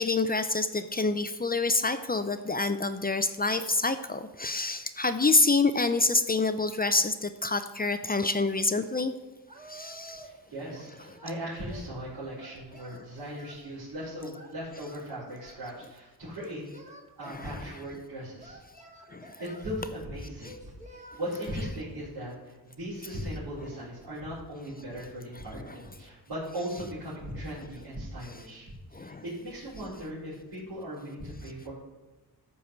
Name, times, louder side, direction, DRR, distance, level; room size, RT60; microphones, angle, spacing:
voice 1, 0.0-9.1 9.7-10.2 10.9-11.1 12.9-13.0 17.2-18.0 19.1-19.6 20.4-20.5 21.3-21.6 23.1-23.2 23.6-23.7 25.5-25.8 26.6-26.7 27.5-27.6 28.2-28.3 28.9-29.3, left 3 dB, 25° left, 10 dB, 0.6 m, -28 dB
Singing, 9.5-10.4 10.7-11.9 12.4-13.6 14.3-15.6 16.3-17.6 18.4-19.7 20.4-21.8, right 2 dB, 20° right, 1.6 m, -50 dB
voice 2, 10.1-16.6 17.2-18.6 19.4-20.6 20.9-31.7, equal, 75° right, -11 dB, 4.3 m, -38 dB
12.5 x 4.8 x 7.1 m, 1.1 s
wide cardioid pair, 110°, 39 cm